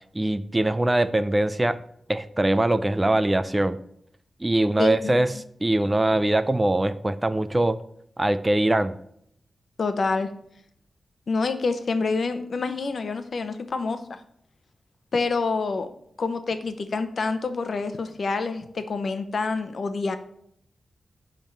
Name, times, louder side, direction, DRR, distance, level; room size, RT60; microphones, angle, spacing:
voice 1, 0.1-1.8 2.1-3.8 4.4-5.3 5.6-7.8 8.2-9.0, right 1 dB, 20° right, 13 dB, 0.5 m, -22 dB
voice 2, 4.8-5.1 9.8-10.3 11.3-14.2 15.1-15.9 16.2-20.2, left 4 dB, 60° left, 9 dB, 0.9 m, -27 dB
10.0 x 3.7 x 7.2 m, 0.69 s
wide cardioid pair, 90°, 0 cm